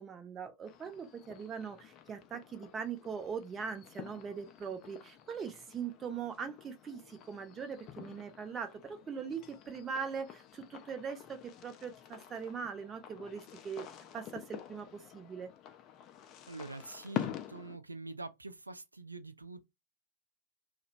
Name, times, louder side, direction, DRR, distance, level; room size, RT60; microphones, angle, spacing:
voice 1, 0.0-13.9 14.1-15.5, right 6 dB, 20° right, 0.6 m, -41 dB
sound 1, 0.7-17.8, left 11 dB, 35° left, 0.4 m, -48 dB
voice 2, 16.5-19.8, right 2 dB, 80° right, 0.3 m, -45 dB
2.8 x 2.1 x 2.4 m
figure-of-eight pair, 90°, 0 cm